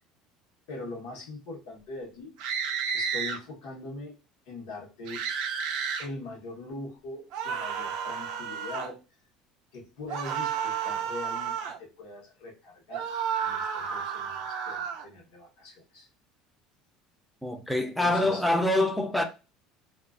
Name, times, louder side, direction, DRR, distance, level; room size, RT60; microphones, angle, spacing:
voice 1, 0.7-2.3 2.9-4.2 4.5-5.2 6.0-9.0 9.7-13.0 13.4-16.1 18.0-18.4, left 2 dB, 80° left, 1.0 m, -42 dB
sound 1, 2.4-3.4 5.1-6.1 7.3-8.9 10.1-11.8 12.9-15.0, right 7 dB, 65° right, 0.4 m, -32 dB
voice 2, 17.4-19.2, left 1 dB, ahead, 0.4 m, -25 dB
2.3 x 2.3 x 2.3 m
cardioid pair, 150°, 0 cm